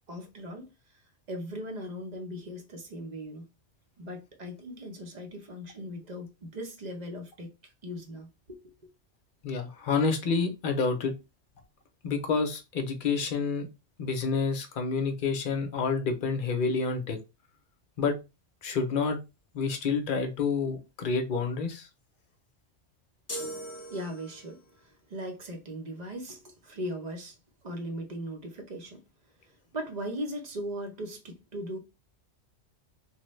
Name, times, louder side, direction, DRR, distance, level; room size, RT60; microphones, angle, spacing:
voice 1, 0.1-0.7 1.3-3.4 4.0-7.5 7.8-8.7 23.9-27.4 27.6-29.0 29.7-31.8, equal, 40° right, 0.8 m, -38 dB
voice 2, 9.4-11.1 12.0-13.7 14.0-17.2 18.0-18.2 18.6-19.2 19.5-21.9, left 4 dB, 50° left, 0.8 m, -28 dB
sound 1, 23.3-24.6, right 1 dB, 25° left, 0.3 m, -39 dB
3.2 x 2.2 x 3.1 m
omnidirectional pair, 1.2 m